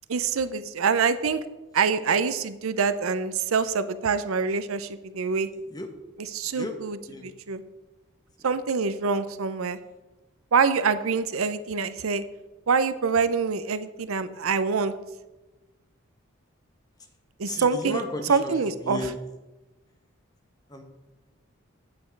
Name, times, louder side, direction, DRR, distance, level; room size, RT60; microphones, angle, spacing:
voice 1, 0.1-1.4 1.7-5.5 6.2-7.6 8.4-9.8 10.5-12.2 12.7-14.9 17.4-19.1, right 5 dB, 90° right, 13 dB, 0.6 m, -25 dB
voice 2, 17.5-18.5 18.8-19.1 20.7-20.8, left 1 dB, 20° left, 4 dB, 1.1 m, -33 dB
8.6 x 8.5 x 4.5 m, 1.1 s
head